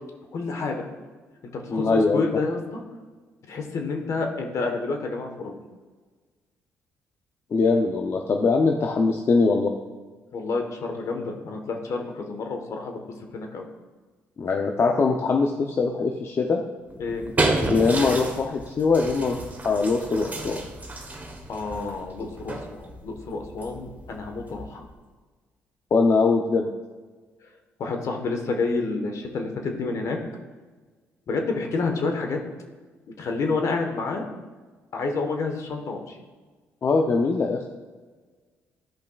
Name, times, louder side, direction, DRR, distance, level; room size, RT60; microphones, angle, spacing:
voice 1, 0.3-0.9 1.5-2.8 3.5-5.6 10.3-13.7 17.0-17.2 21.5-24.8 27.8-30.2 31.3-32.4 33.2-34.3 34.9-36.2, left 3 dB, 60° left, 3 dB, 1.2 m, -29 dB
voice 2, 1.7-2.2 7.5-9.7 14.4-16.6 17.7-20.6 25.9-26.7 36.8-37.7, left 4 dB, 45° left, 1 dB, 0.6 m, -22 dB
sound 1, 16.9-25.0, right 2 dB, 25° right, 1.2 m, -31 dB
13.0 x 5.2 x 2.4 m, 1.4 s
supercardioid pair, 70°, 6 cm